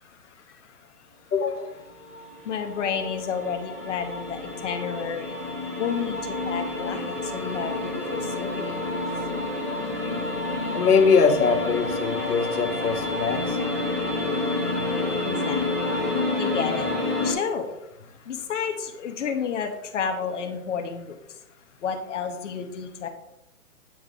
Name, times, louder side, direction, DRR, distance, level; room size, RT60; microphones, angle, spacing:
voice 1, 1.3-1.8 10.7-13.6, left 5 dB, 85° left, 7 dB, 1.2 m, -22 dB
sound 1, 2.0-17.3, left 2 dB, 10° right, 0.5 m, -29 dB
voice 2, 2.5-5.3 5.8-6.2 6.5-8.7 15.2-15.7 16.4-16.9 17.2-17.7 18.3-21.2 21.8-23.1, left 7 dB, 55° left, 4 dB, 1.0 m, -30 dB
8.0 x 3.5 x 5.1 m, 0.87 s
hypercardioid pair, 170°, 44 cm